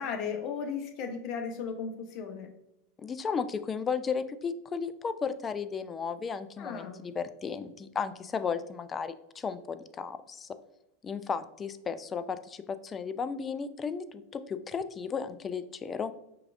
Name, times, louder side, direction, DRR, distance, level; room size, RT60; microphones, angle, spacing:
voice 1, 0.0-2.5 6.6-7.0, left 6 dB, 50° left, 4 dB, 0.8 m, -35 dB
voice 2, 3.0-10.6 11.0-16.1, left 6 dB, 25° left, 12 dB, 0.3 m, -34 dB
5.6 x 2.4 x 2.5 m, 0.86 s
hypercardioid pair, 95°, 0 cm